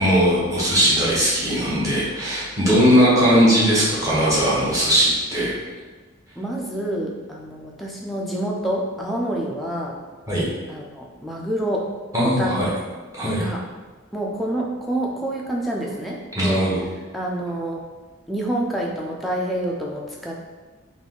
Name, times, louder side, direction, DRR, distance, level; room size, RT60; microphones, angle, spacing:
voice 1, 0.0-5.5 10.3-10.5 12.1-12.7 13.1-13.4 16.3-16.8, equal, 15° right, -8 dB, 1.0 m, -19 dB
voice 2, 6.4-10.0 10.7-11.9 12.2-12.8 13.2-13.6 14.1-16.7 17.1-17.8 18.3-20.3, right 1 dB, ahead, -3 dB, 0.4 m, -27 dB
3.5 x 2.5 x 3.7 m, 1.3 s
head